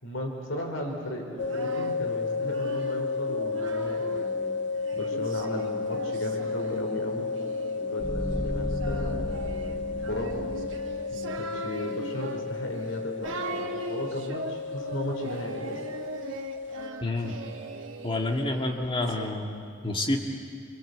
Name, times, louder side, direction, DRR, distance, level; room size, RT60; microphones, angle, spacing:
voice 1, 0.0-4.6 4.9-7.3 7.7-10.5 11.1-15.8, left 1 dB, 90° left, 1 dB, 4.8 m, -36 dB
Singing, 1.2-4.3 4.8-19.3, right 2 dB, 85° right, 2.3 m, -40 dB
sound 1, 1.4-16.9, left 4 dB, 65° left, 1.4 m, -33 dB
sound 2, 8.0-11.1, left 1 dB, ahead, 7.9 m, -34 dB
voice 2, 17.0-17.4 18.0-20.2, left 2 dB, 25° left, 1 dB, 2.5 m, -29 dB
28.0 x 24.5 x 8.2 m, 2.3 s
head